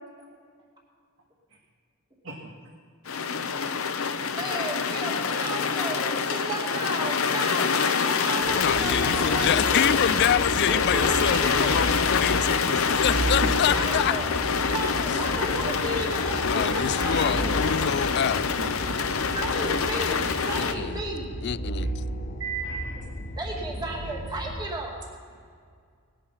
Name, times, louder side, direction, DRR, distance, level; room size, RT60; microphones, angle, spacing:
sound 1, 3.1-20.7, left 5 dB, 70° left, 0.8 m, -26 dB
voice 1, 4.1-9.8 10.6-11.8 13.7-14.3 14.7-17.6 19.3-21.4 23.4-25.0, right 1 dB, 20° right, -2 dB, 2.4 m, -33 dB
sound 2, 8.4-24.6, right 1 dB, 35° left, 1.3 m, -34 dB
voice 2, 8.6-14.2 16.4-18.6 20.6-21.0 21.4-21.9, left 9 dB, 50° left, 18 dB, 0.3 m, -27 dB
voice 3, 18.9-19.2 21.8-21.9 22.4-23.0 25.3-25.5, right 4 dB, 60° right, -2 dB, 1.8 m, -37 dB
19.0 x 10.0 x 5.8 m, 2.1 s
head